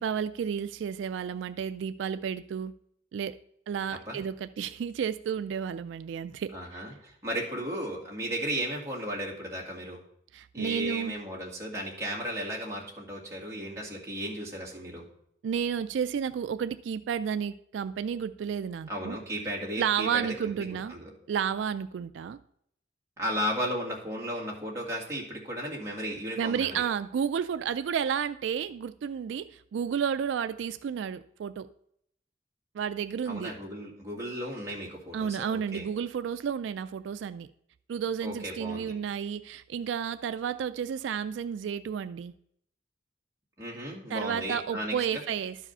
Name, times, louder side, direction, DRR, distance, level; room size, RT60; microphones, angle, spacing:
voice 1, 0.0-2.7 3.1-3.4 3.7-6.8 10.3-11.1 15.4-19.2 19.8-20.9 21.3-22.4 26.4-31.7 32.7-33.5 35.1-37.5 37.9-42.3 44.1-45.6, right 7 dB, 80° right, 12 dB, 0.3 m, -31 dB
voice 2, 6.5-10.0 10.5-15.0 18.9-21.1 23.2-26.7 33.3-35.9 38.2-38.9 43.6-45.2, equal, 15° right, -4 dB, 2.0 m, -35 dB
11.5 x 4.9 x 5.4 m, 0.71 s
head